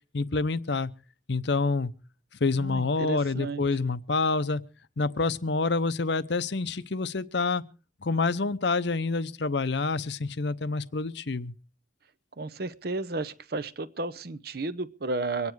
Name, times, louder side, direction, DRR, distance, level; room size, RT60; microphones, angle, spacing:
voice 1, 0.1-0.9 1.3-1.9 2.4-4.6 5.0-7.6 8.0-11.5, left 3 dB, 60° left, 0.7 m, -27 dB
voice 2, 2.6-3.7 12.4-15.5, right 2 dB, 50° right, 0.8 m, -33 dB
24.0 x 9.6 x 4.7 m
head